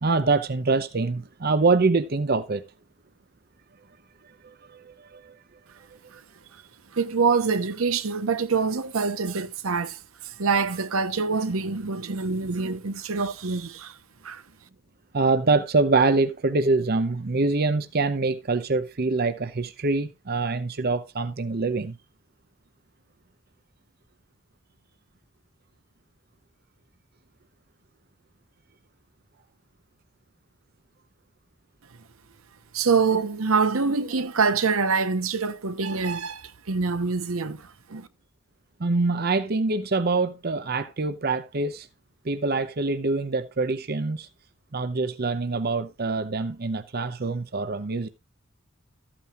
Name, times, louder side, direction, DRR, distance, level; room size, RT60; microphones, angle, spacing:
voice 1, 0.0-2.6 4.4-5.4 15.1-22.0 38.8-41.9 42.2-44.3 44.7-48.1, right 3 dB, 50° right, 0.7 m, -25 dB
voice 2, 6.9-14.0 14.2-14.4 32.7-38.1, right 5 dB, 80° right, 0.9 m, -25 dB
14.0 x 8.7 x 2.4 m
head